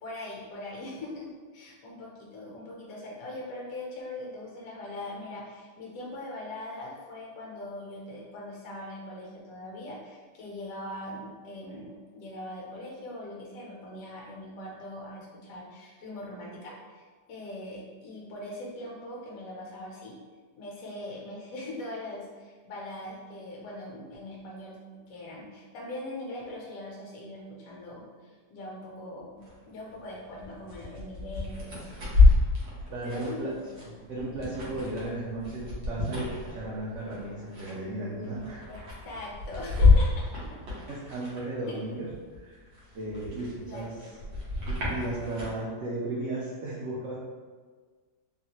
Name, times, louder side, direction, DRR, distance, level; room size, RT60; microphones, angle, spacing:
voice 1, 0.0-20.2 20.6-24.8 25.1-32.1 33.0-33.5 38.7-40.6 41.7-41.8 43.6-44.2, left 1 dB, 60° left, -3 dB, 1.1 m, -41 dB
sound 1, 29.4-29.5 29.9-41.7 42.1-45.6, left 3 dB, 85° right, 1.6 m, -27 dB
voice 2, 32.9-39.0 40.9-42.7 42.9-43.9 44.7-47.2, right 2 dB, 65° right, -5 dB, 0.7 m, -35 dB
3.9 x 2.1 x 2.9 m, 1.5 s
omnidirectional pair, 1.8 m